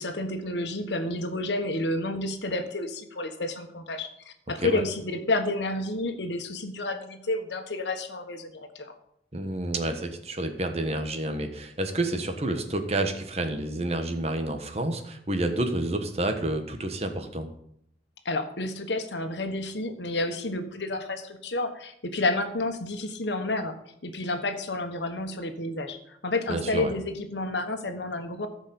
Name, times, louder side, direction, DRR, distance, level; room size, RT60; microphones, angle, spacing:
voice 1, 0.0-8.9 18.2-23.7 24.0-28.5, left 2 dB, 90° left, 7 dB, 1.4 m, -30 dB
voice 2, 9.3-17.5 26.5-26.9, right 1 dB, 35° right, 6 dB, 1.3 m, -29 dB
14.0 x 5.3 x 7.1 m, 0.72 s
head